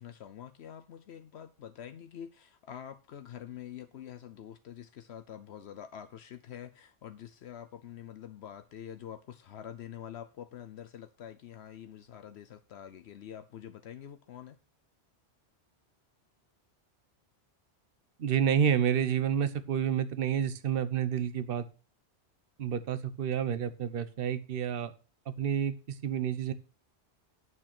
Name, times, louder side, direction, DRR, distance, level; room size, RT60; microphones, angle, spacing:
voice 1, 0.0-14.6, left 9 dB, 75° left, 0.9 m, -46 dB
voice 2, 18.2-21.7 22.6-24.9 25.3-26.5, right 8 dB, 60° right, 1.0 m, -29 dB
9.1 x 6.4 x 5.9 m
omnidirectional pair, 1.1 m